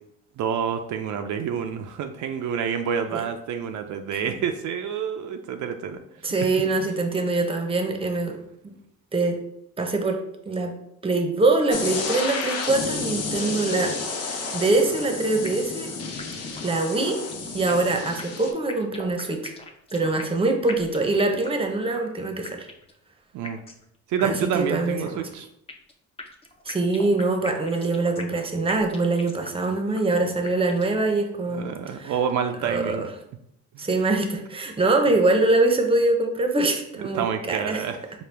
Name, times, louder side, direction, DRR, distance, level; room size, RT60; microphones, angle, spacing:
voice 1, 0.4-6.0 6.8-6.9 23.3-23.6 24.1-25.5 31.5-33.0 33.7-33.9 37.0-38.0, right 7 dB, 75° right, 6 dB, 0.4 m, -28 dB
voice 2, 6.2-8.4 8.6-8.7 9.1-9.4 9.8-10.8 11.0-14.0 14.2-15.9 16.6-17.2 17.5-19.5 19.9-22.7 24.2-25.2 26.7-32.1 32.6-33.1 33.8-37.8, right 2 dB, 20° right, 4 dB, 0.7 m, -24 dB
sound 1, 11.7-18.5, left 4 dB, 55° left, 0.8 m, -31 dB
sound 2, 15.4-15.9 16.2-16.3 16.6-16.7 17.1-17.9 18.2-20.4 20.7-21.7 21.9-22.0 22.4-23.0 23.4-23.9 24.2-24.3 24.6-24.7 25.0-25.9 26.2-28.4 28.7-29.7 29.9-30.0 30.4-31.0, left 3 dB, 20° left, 0.6 m, -40 dB
4.9 x 2.3 x 3.3 m, 0.77 s
cardioid pair, 90°, 30 cm